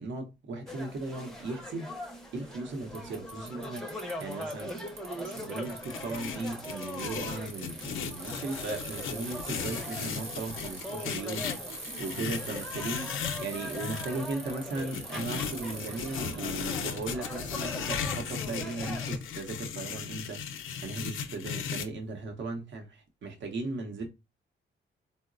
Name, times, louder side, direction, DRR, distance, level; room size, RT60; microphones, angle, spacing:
voice 1, 0.0-1.9 2.3-4.7 5.2-11.6 12.0-20.4 20.8-24.1, right 3 dB, 70° right, 0.8 m, -37 dB
sound 1, 0.7-19.2, left 1 dB, ahead, 0.5 m, -41 dB
Bicycle, 2.9-17.1, right 2 dB, 35° right, 0.7 m, -43 dB
sound 2, 5.6-14.1 14.8-21.9, left 7 dB, 90° left, 0.5 m, -37 dB
3.8 x 2.1 x 2.4 m
cardioid pair, 120°, 20 cm